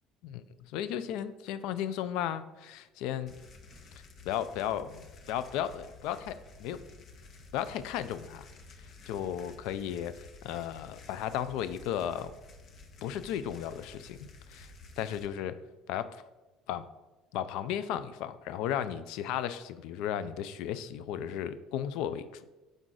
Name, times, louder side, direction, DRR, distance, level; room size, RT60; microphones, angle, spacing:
voice 1, 0.2-3.4 4.3-6.8 7.5-8.5 9.1-12.3 13.0-14.7 15.0-15.6 15.9-16.2 16.7-16.9 17.3-22.4, left 10 dB, 65° left, 13 dB, 0.4 m, -35 dB
sound 1, 3.3-15.3, left 3 dB, 50° left, 0.7 m, -52 dB
6.4 x 4.7 x 3.8 m, 1.1 s
hypercardioid pair, 60°, 0 cm